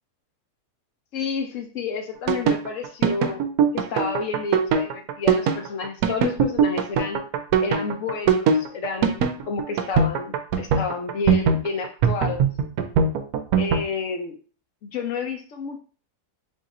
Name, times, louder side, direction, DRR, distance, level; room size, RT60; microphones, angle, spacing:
voice 1, 1.1-3.5 3.7-7.2 7.6-12.5 13.6-14.4 14.8-15.8, left 4 dB, 60° left, 4 dB, 0.9 m, -30 dB
sound 1, 2.3-13.8, right 6 dB, 75° right, 1.0 m, -21 dB
3.7 x 2.6 x 4.1 m, 0.39 s
omnidirectional pair, 1.7 m